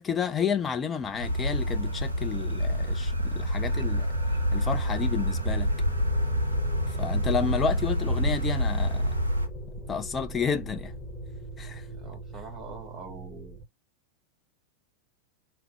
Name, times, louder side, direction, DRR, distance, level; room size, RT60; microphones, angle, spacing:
voice 1, 0.0-4.1 4.5-5.7 7.0-9.1 9.9-10.9 11.6-11.8, left 6 dB, 20° left, 0.5 m, -30 dB
sound 1, 1.0-13.6, left 1 dB, ahead, 1.6 m, -39 dB
sound 2, 1.2-9.5, equal, 80° right, 0.6 m, -27 dB
voice 2, 12.0-13.6, right 3 dB, 25° right, 1.3 m, -44 dB
3.6 x 2.3 x 3.1 m
figure-of-eight pair, 90°, 0 cm